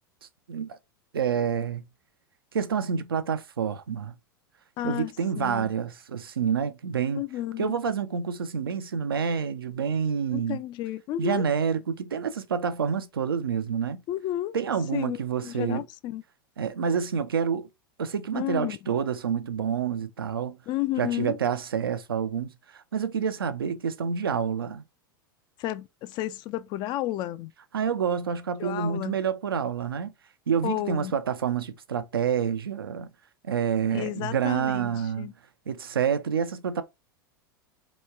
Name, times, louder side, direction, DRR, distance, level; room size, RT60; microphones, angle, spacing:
voice 1, 1.1-1.9 2.5-4.2 4.8-7.2 7.6-10.6 11.2-14.0 14.5-15.8 16.6-17.7 18.0-20.6 21.0-24.8 27.7-30.1 30.5-33.1 33.4-35.3 35.7-36.8, right 7 dB, 85° right, 0.4 m, -28 dB
voice 2, 4.8-5.1 5.4-5.7 7.2-7.7 10.3-11.4 14.1-14.6 14.9-16.2 18.3-18.9 20.7-21.4 25.6-27.5 28.6-29.2 30.6-31.1 33.9-35.3, left 14 dB, 40° left, 0.4 m, -32 dB
3.0 x 2.2 x 3.4 m
hypercardioid pair, 90°, 12 cm